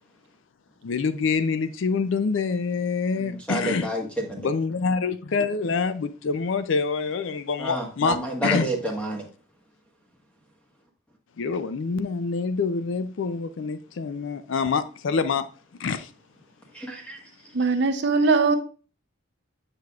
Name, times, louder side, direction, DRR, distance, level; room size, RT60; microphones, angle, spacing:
voice 1, 0.8-3.9 4.4-8.7 11.4-15.5 15.8-16.1, left 4 dB, 65° left, 0.4 m, -26 dB
voice 2, 3.2-4.5 7.6-9.3 16.7-17.2, right 1 dB, 5° left, 1.3 m, -29 dB
voice 3, 17.5-18.6, right 4 dB, 55° right, 0.6 m, -20 dB
7.7 x 6.6 x 2.4 m
head